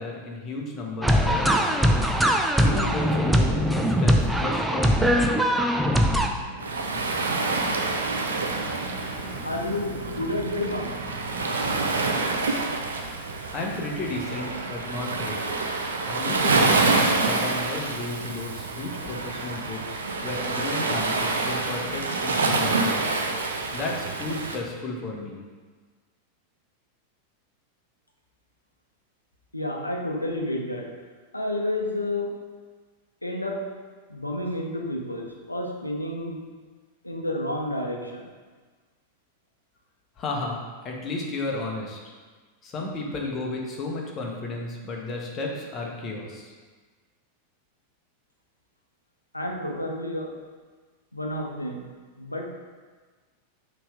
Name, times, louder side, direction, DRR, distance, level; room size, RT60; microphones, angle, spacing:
voice 1, 0.0-1.9 2.6-5.0 13.5-15.4 16.0-23.1 23.7-25.4 40.2-40.6 40.8-42.0 42.6-46.5, left 2 dB, 30° left, -1 dB, 1.1 m, -33 dB
sound 1, 1.0-6.3, equal, 5° right, 0.5 m, -21 dB
sound 2, 6.5-11.4, right 1 dB, 45° right, 1.4 m, -40 dB
Waves surf, 6.6-24.6, right 3 dB, 70° right, 0.5 m, -27 dB
voice 2, 9.4-11.0 29.5-31.1 31.3-32.4 33.2-33.8 34.1-36.4 37.0-38.3 49.3-50.4 51.1-51.9 52.2-52.5, left 1 dB, 85° left, 1 dB, 0.7 m, -30 dB
5.9 x 3.2 x 5.0 m, 1.4 s
figure-of-eight pair, 90°, 0 cm